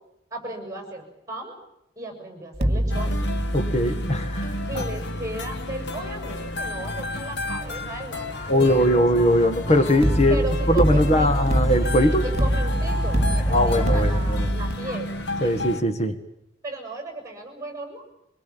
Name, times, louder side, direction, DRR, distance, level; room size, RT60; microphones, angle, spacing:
voice 1, 0.3-1.5 2.0-3.2 4.7-9.1 10.3-11.3 12.2-15.2 16.6-18.0, right 1 dB, 20° right, 5 dB, 6.9 m, -35 dB
sound 1, 2.5-7.6 10.0-14.7, equal, 40° right, 2.9 m, -25 dB
sound 2, 2.9-15.8, left 2 dB, 75° left, 1.7 m, -32 dB
voice 2, 3.5-4.8 8.5-12.3 13.5-14.5 15.4-16.2, equal, 35° left, 7 dB, 1.8 m, -21 dB
sound 3, 8.6-14.5, left 1 dB, 20° left, 0.9 m, -34 dB
25.0 x 21.5 x 8.9 m, 0.83 s
head